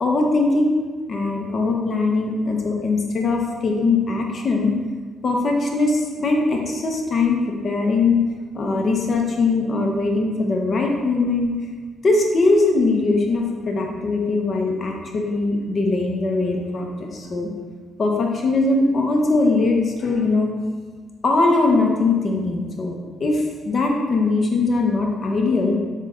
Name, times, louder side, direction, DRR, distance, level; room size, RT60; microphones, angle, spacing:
voice 1, 0.0-0.7 1.1-4.7 5.2-8.2 8.5-11.5 12.0-17.5 18.0-20.5 21.2-25.8, left 3 dB, 45° left, 1 dB, 0.5 m, -21 dB
3.6 x 2.1 x 3.5 m, 1.4 s
cardioid pair, 90°, 0 cm